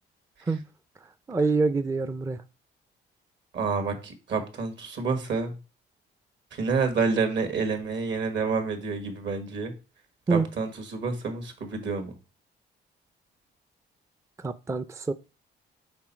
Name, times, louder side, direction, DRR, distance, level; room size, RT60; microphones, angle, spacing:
voice 1, 1.0-2.4 10.3-10.5 14.4-15.1, right 4 dB, 15° right, 0.4 m, -26 dB
voice 2, 3.5-5.6 6.5-9.7 10.3-12.1, right 4 dB, 65° right, 1.6 m, -28 dB
6.1 x 4.5 x 4.3 m
cardioid pair, 90°, 20 cm